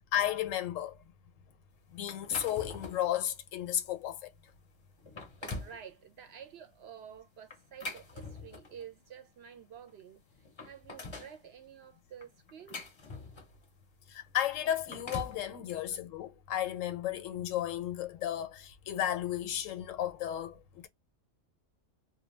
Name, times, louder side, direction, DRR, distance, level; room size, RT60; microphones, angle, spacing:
voice 1, 0.1-1.0 1.9-4.3 14.1-20.9, left 11 dB, 80° left, 1.0 m, -33 dB
sound 1, 2.1-3.1 3.7-3.9 4.5-4.6 5.0-5.8 7.5-8.8 9.9-10.0 10.3-11.4 12.2-13.6 14.6-15.4, left 3 dB, 30° left, 0.5 m, -43 dB
voice 2, 5.4-10.2 10.6-12.8 15.5-15.6, right 8 dB, 65° right, 0.7 m, -50 dB
2.2 x 2.2 x 3.2 m
omnidirectional pair, 1.3 m